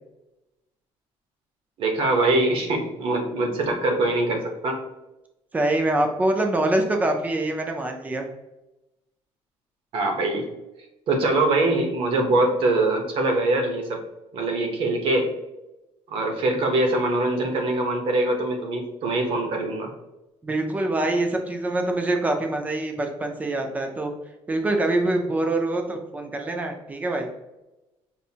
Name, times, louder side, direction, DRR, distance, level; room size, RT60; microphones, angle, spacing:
voice 1, 1.8-4.8 9.9-10.4 11.1-14.0 14.3-15.3 16.1-19.9, right 2 dB, 50° right, 3 dB, 0.9 m, -23 dB
voice 2, 5.5-8.3 20.4-24.1 24.5-27.3, right 2 dB, 15° right, 4 dB, 0.5 m, -24 dB
5.4 x 2.6 x 2.8 m, 0.98 s
cardioid pair, 165°, 11 cm